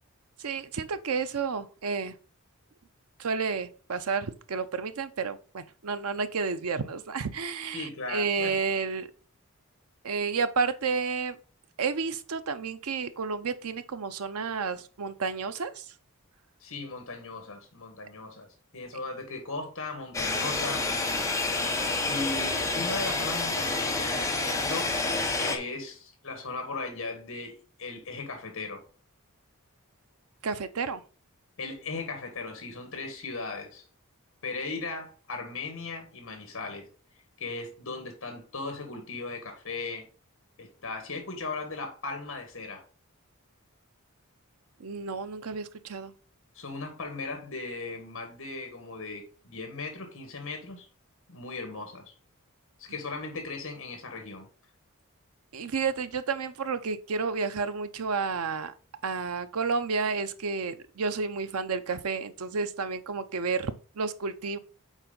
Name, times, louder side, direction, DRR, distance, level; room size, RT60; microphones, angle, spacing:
voice 1, 0.4-2.1 3.2-9.1 10.0-11.4 11.8-15.9 30.4-31.0 44.8-46.1 55.5-58.7 59.0-64.6, right 5 dB, 90° right, 0.7 m, -31 dB
voice 2, 7.7-8.5 16.6-20.9 22.1-24.9 25.4-28.8 31.6-33.8 34.4-36.9 37.4-40.1 40.6-42.8 46.5-50.9 51.3-52.1 52.8-54.5, left 3 dB, 65° left, 1.6 m, -37 dB
sound 1, 20.1-25.6, left 3 dB, 15° left, 0.9 m, -28 dB
7.3 x 4.3 x 3.9 m
head